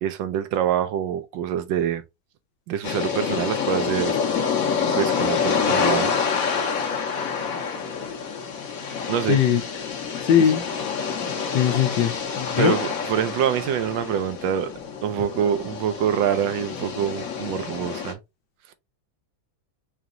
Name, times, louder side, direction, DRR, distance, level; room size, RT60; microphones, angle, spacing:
voice 1, 0.0-2.0 2.7-4.1 4.9-6.2 9.1-9.4 10.4-10.5 12.6-14.7 15.0-18.2, right 9 dB, 80° right, 1.3 m, -25 dB
sound 1, 2.8-18.1, left 6 dB, 55° left, 1.2 m, -27 dB
voice 2, 9.3-9.6 10.2-10.6 11.5-12.8, left 9 dB, 75° left, 1.4 m, -20 dB
5.0 x 2.9 x 2.5 m
omnidirectional pair, 2.1 m